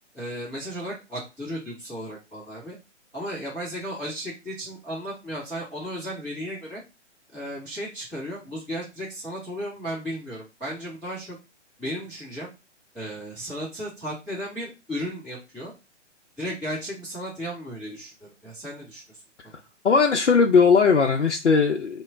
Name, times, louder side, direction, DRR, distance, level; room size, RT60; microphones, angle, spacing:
voice 1, 0.1-2.8 3.1-6.8 7.3-11.4 11.8-12.5 12.9-15.7 16.4-19.0 19.4-19.6, equal, ahead, -13 dB, 0.6 m, -35 dB
voice 2, 19.8-22.0, left 5 dB, 70° left, 3 dB, 0.6 m, -18 dB
3.0 x 2.1 x 3.5 m, 0.27 s
figure-of-eight pair, 130°, 36 cm